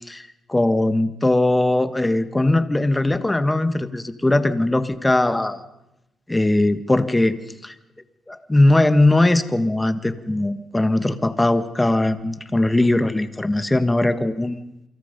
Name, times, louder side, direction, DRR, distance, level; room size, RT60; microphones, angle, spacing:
voice 1, 0.1-5.6 6.3-7.4 7.6-7.7 8.3-14.6, left 2 dB, 15° left, 11 dB, 1.6 m, -20 dB
29.0 x 24.5 x 5.3 m, 0.90 s
cardioid pair, 95°, 0 cm